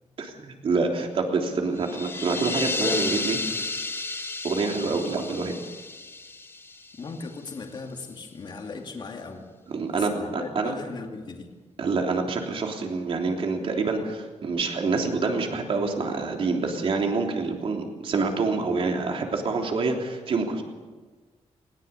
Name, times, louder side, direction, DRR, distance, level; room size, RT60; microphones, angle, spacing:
voice 1, 0.2-3.4 4.4-5.5 9.7-10.7 11.8-20.6, right 4 dB, 55° right, 2 dB, 3.2 m, -27 dB
sound 1, 1.8-7.4, left 3 dB, 20° left, 0.8 m, -32 dB
voice 2, 7.0-9.5 9.9-11.5, left 4 dB, 40° left, 3 dB, 2.6 m, -38 dB
20.0 x 18.5 x 7.1 m, 1.3 s
wide cardioid pair, 140°, 12 cm